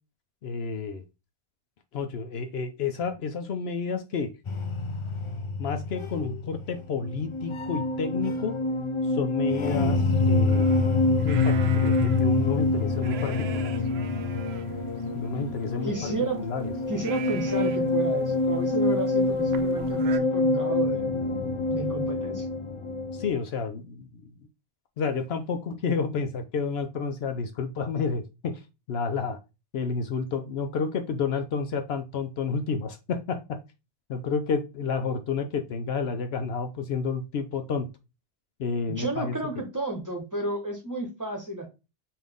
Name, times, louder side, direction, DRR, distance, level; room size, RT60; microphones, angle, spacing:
voice 1, 0.4-1.0 1.9-4.3 5.6-8.5 9.1-13.7 15.1-15.9 16.4-16.7 23.1-24.1 25.0-28.6 28.9-29.4 29.7-33.6 34.1-37.9 38.6-39.3, left 5 dB, 70° left, 0.8 m, -30 dB
sound 1, 4.5-23.3, left 3 dB, 40° left, 0.4 m, -26 dB
sound 2, 10.1-20.2, right 8 dB, 70° right, 0.8 m, -44 dB
voice 2, 15.8-16.4 16.9-21.1 21.7-22.5 38.9-41.7, right 2 dB, 15° right, 1.0 m, -32 dB
5.7 x 2.7 x 3.5 m
omnidirectional pair, 1.1 m